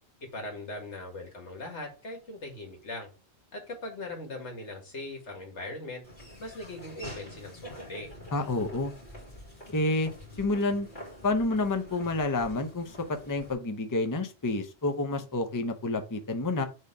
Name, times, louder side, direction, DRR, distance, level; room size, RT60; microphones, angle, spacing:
voice 1, 0.3-3.1 3.5-6.0 6.4-8.1, left 2 dB, 85° left, 2 dB, 2.1 m, -40 dB
Laughter / Walk footsteps, 6.0-13.5, equal, 50° left, 2.4 m, -46 dB
voice 2, 8.3-8.9 9.7-10.1 10.4-10.9 11.2-13.0 13.3-16.6, left 2 dB, 20° left, 6 dB, 0.7 m, -29 dB
6.5 x 3.5 x 5.0 m, 0.33 s
omnidirectional pair, 1.1 m